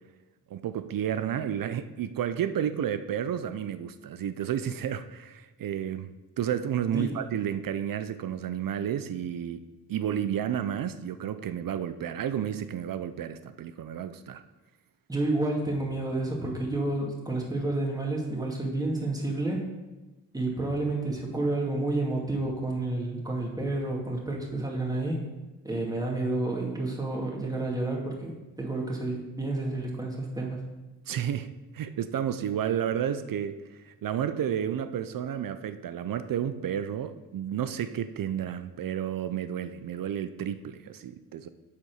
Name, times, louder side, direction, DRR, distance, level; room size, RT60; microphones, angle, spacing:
voice 1, 0.5-9.6 9.9-14.4 31.1-41.5, right 9 dB, 60° right, 12 dB, 0.6 m, -31 dB
voice 2, 15.1-19.6 20.3-25.3 25.6-30.6, right 2 dB, 10° right, -2 dB, 2.1 m, -30 dB
8.5 x 4.2 x 6.3 m, 1.1 s
cardioid pair, 80°, 39 cm